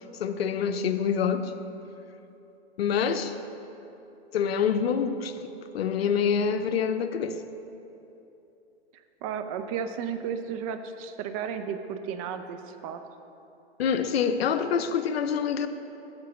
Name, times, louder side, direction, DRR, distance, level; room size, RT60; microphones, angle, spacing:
voice 1, 0.2-1.5 2.8-3.3 4.3-7.4 13.8-15.7, left 7 dB, 70° left, 9 dB, 0.6 m, -26 dB
voice 2, 9.2-13.0, right 7 dB, 35° right, 8 dB, 0.5 m, -33 dB
7.5 x 4.5 x 6.8 m, 2.9 s
hypercardioid pair, 115°, 32 cm